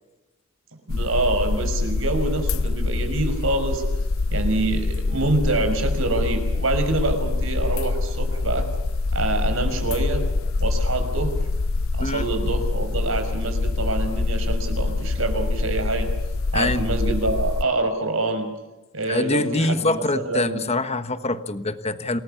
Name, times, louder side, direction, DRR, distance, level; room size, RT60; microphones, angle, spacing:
sound 1, 0.9-17.6, left 3 dB, 75° left, 0.7 m, -25 dB
voice 1, 0.9-3.8 4.3-8.6 9.1-10.2 10.6-11.4 11.9-16.1 16.5-18.5 18.9-20.6, right 2 dB, 70° right, 6 dB, 5.8 m, -26 dB
voice 2, 16.5-16.9 19.1-22.2, left 2 dB, 30° left, 11 dB, 1.3 m, -24 dB
28.0 x 19.5 x 7.2 m, 1.1 s
head